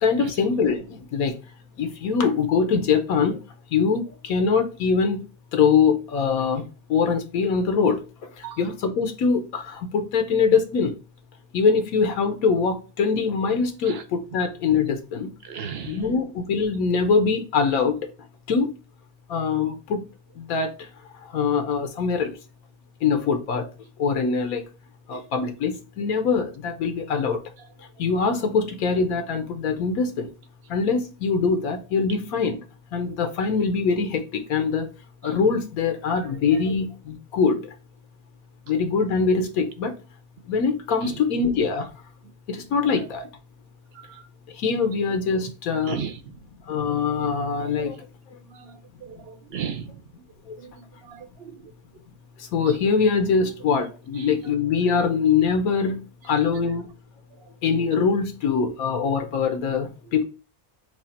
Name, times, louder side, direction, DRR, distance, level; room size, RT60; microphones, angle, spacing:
voice 1, 0.0-1.3 1.8-3.4 3.7-5.3 5.5-8.0 8.4-10.9 11.5-15.3 15.8-18.0 18.5-18.7 19.3-20.1 20.4-20.7 21.3-22.3 23.0-23.7 24.0-24.6 25.1-27.4 28.0-30.3 30.7-32.6 32.9-34.9 35.2-37.7 38.7-39.9 40.5-41.9 42.5-43.3 44.6-46.0 46.7-48.0 52.4-56.8 57.6-60.2, left 5 dB, 80° left, 1.2 m, -23 dB
voice 2, 15.4-16.0 41.0-41.2 43.9-44.3 45.7-46.2 48.5-49.9 50.6-51.6 54.2-54.3, right 8 dB, 65° right, 0.6 m, -36 dB
4.8 x 2.4 x 4.2 m
omnidirectional pair, 1.5 m